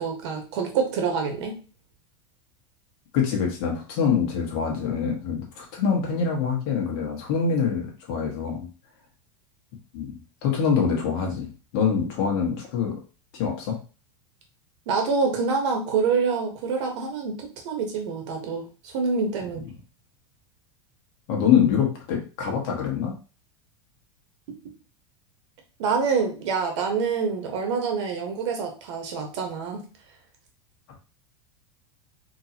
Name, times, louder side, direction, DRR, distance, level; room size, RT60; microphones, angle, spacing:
voice 1, 0.0-1.6 14.9-19.6 25.8-29.8, right 5 dB, 65° right, 3 dB, 1.4 m, -26 dB
voice 2, 3.1-8.7 9.9-10.1 10.4-12.9 13.3-13.7 21.3-23.1, left 7 dB, 55° left, 0 dB, 1.7 m, -25 dB
4.4 x 3.2 x 2.9 m, 0.34 s
supercardioid pair, 150°, 16 cm